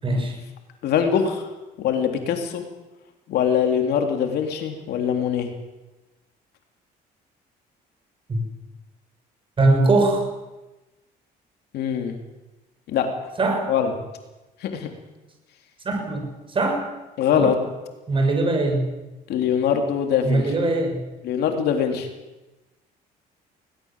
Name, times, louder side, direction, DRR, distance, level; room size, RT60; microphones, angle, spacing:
voice 1, 0.0-0.4 8.3-8.4 9.6-10.3 13.4-13.7 15.8-16.8 17.3-17.5 18.1-18.9 20.2-21.0, right 2 dB, 30° right, 4 dB, 6.5 m, -21 dB
voice 2, 0.8-1.5 1.8-2.6 3.3-5.5 11.7-12.2 12.9-13.1 13.7-13.9 14.6-14.9 17.2-17.6 19.3-20.5 21.2-22.1, left 8 dB, 70° left, 4 dB, 3.5 m, -22 dB
20.5 x 18.5 x 7.5 m, 1.1 s
cardioid pair, 110°, 17 cm